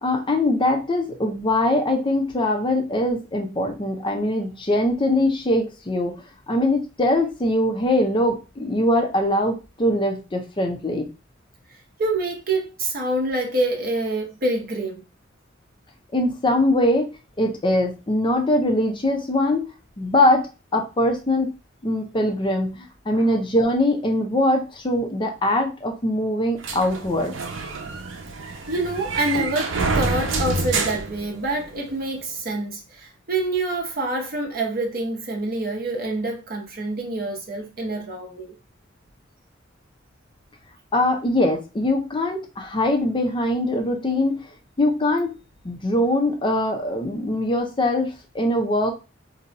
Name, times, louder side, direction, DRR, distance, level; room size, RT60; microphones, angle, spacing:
voice 1, 0.0-6.2 6.5-11.1 16.1-17.1 17.4-19.7 20.0-20.5 20.7-21.5 21.8-27.3 40.9-44.4 44.8-45.3 45.6-48.9, left 1 dB, 25° left, 0.5 m, -22 dB
voice 2, 12.0-15.0 23.1-23.3 28.7-38.5, right 2 dB, 50° right, 0.8 m, -26 dB
sound 1, 26.6-31.9, right 3 dB, 80° right, 0.6 m, -27 dB
2.6 x 2.3 x 4.0 m
head